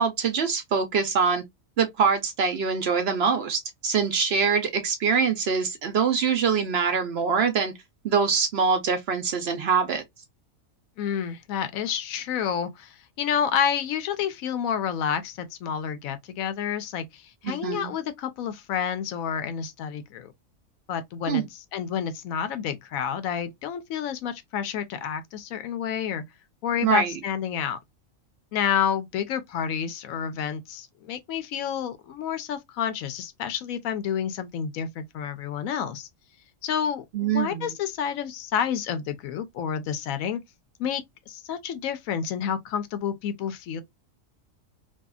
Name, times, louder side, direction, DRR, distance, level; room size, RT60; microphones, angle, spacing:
voice 1, 0.0-1.4 1.8-7.7 8.0-10.0 17.4-17.9 21.3-21.4 26.8-27.1 37.1-37.7, right 6 dB, 60° right, 0.7 m, -24 dB
voice 2, 11.0-20.3 20.9-26.2 26.6-27.8 28.5-36.1 36.6-40.4 40.8-43.8, left 8 dB, 85° left, 1.0 m, -29 dB
2.7 x 2.4 x 2.2 m
omnidirectional pair, 1.4 m